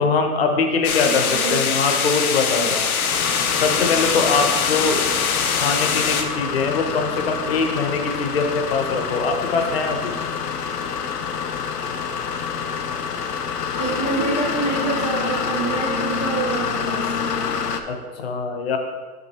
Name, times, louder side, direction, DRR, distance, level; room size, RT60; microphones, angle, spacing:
voice 1, 0.0-2.9 3.6-5.3 5.5-10.2 17.9-18.8, left 4 dB, 40° left, 4 dB, 1.0 m, -22 dB
sound 1, 0.8-6.2, left 6 dB, 65° left, 0.9 m, -23 dB
voice 2, 1.0-1.6 2.6-2.7 13.7-17.1, right 3 dB, 20° left, -7 dB, 0.4 m, -26 dB
sound 2, 3.1-17.8, left 6 dB, 90° left, 0.9 m, -27 dB
6.7 x 6.3 x 4.3 m, 1.4 s
hypercardioid pair, 155°, 46 cm